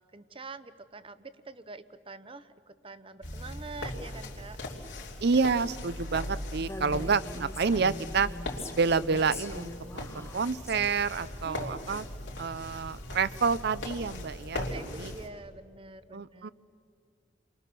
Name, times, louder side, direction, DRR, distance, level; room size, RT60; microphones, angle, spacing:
voice 1, 0.0-4.6 11.4-12.0 14.6-16.5, right 3 dB, 30° right, 13 dB, 0.8 m, -46 dB
sound 1, 3.2-15.3, left 1 dB, 80° left, 3.4 m, -39 dB
voice 2, 5.2-8.3 8.7-12.0 12.4-15.1 16.1-16.5, right 5 dB, 60° right, 16 dB, 0.6 m, -29 dB
Female speech woman speaking, 6.6-10.8, left 2 dB, 15° left, 0.7 m, -43 dB
29.0 x 23.5 x 6.8 m, 2.2 s
head